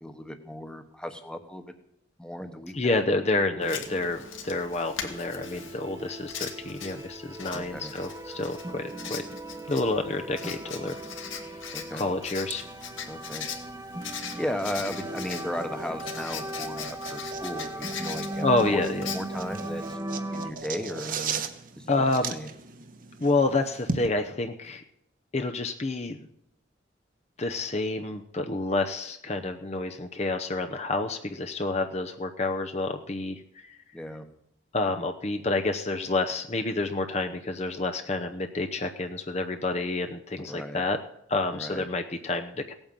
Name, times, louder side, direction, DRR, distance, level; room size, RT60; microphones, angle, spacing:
voice 1, 0.0-1.6 2.2-3.0 7.5-7.9 11.7-12.1 13.1-13.5 14.4-18.8 19.1-20.0 20.3-21.4 21.8-22.5 33.9-34.2 40.4-40.8 41.5-41.8, left 1 dB, 5° left, 7 dB, 1.1 m, -36 dB
voice 2, 2.7-9.2 9.7-11.0 11.3-11.6 11.9-12.6 18.4-19.1 21.9-22.3 23.2-24.8 25.3-26.2 27.4-33.8 34.7-41.0 41.3-42.7, left 2 dB, 35° left, 5 dB, 0.8 m, -29 dB
Writing, 3.6-19.9, left 7 dB, 85° left, 2.1 m, -41 dB
sound 1, 3.6-20.5, right 1 dB, 15° right, 0.9 m, -38 dB
sound 2, 12.4-24.1, right 4 dB, 45° right, 1.2 m, -39 dB
17.5 x 8.9 x 7.5 m, 0.75 s
head